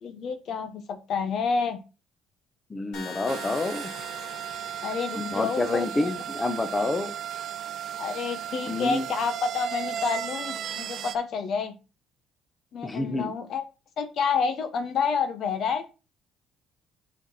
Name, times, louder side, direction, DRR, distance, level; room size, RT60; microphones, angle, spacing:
voice 1, 0.0-1.8 4.8-6.1 6.7-6.8 8.0-11.7 12.7-13.6 14.0-15.9, left 5 dB, 60° left, 8 dB, 1.0 m, -29 dB
voice 2, 2.7-3.9 5.1-7.1 8.7-9.1 12.8-13.3, left 2 dB, 25° left, 9 dB, 0.9 m, -28 dB
sound 1, 2.9-7.0, left 5 dB, 80° left, 1.7 m, -44 dB
sound 2, 3.3-11.2, right 10 dB, 60° right, 0.4 m, -35 dB
4.6 x 4.3 x 5.5 m, 0.31 s
supercardioid pair, 85°, 0 cm